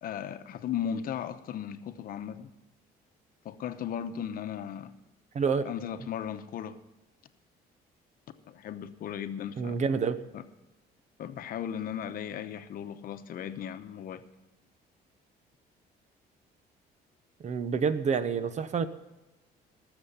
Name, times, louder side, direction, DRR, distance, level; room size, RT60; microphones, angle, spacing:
voice 1, 0.0-2.5 3.4-4.9 5.6-6.8 8.4-9.8 10.3-10.4 11.2-14.2, left 9 dB, 60° left, 9 dB, 0.9 m, -36 dB
voice 2, 9.6-10.2 17.4-18.9, right 5 dB, 45° right, 12 dB, 1.0 m, -28 dB
19.0 x 7.1 x 5.6 m, 1.1 s
cardioid pair, 110°, 17 cm